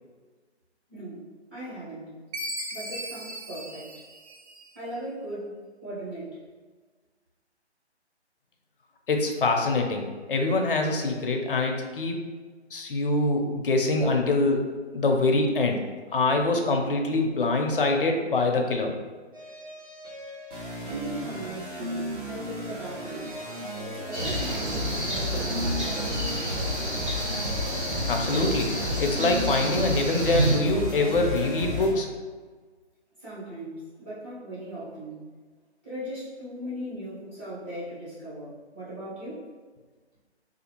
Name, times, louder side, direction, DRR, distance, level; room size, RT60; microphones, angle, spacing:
voice 1, 0.9-1.2 1.5-2.2 2.7-4.0 4.7-6.4 20.9-23.4 23.8-26.1 33.2-35.3 35.8-39.5, right 1 dB, 10° right, -13 dB, 0.6 m, -38 dB
Chime, 2.3-4.9, right 1 dB, 70° right, 0.7 m, -37 dB
voice 2, 9.1-12.2 12.7-15.8 16.1-18.9 28.1-32.1, left 2 dB, 55° left, 3 dB, 0.5 m, -24 dB
sound 1, 19.3-31.9, left 1 dB, 45° right, 1.0 m, -33 dB
sound 2, 24.1-30.6, right 1 dB, 90° right, 1.2 m, -30 dB
2.5 x 2.4 x 2.8 m, 1.4 s
figure-of-eight pair, 145°, 34 cm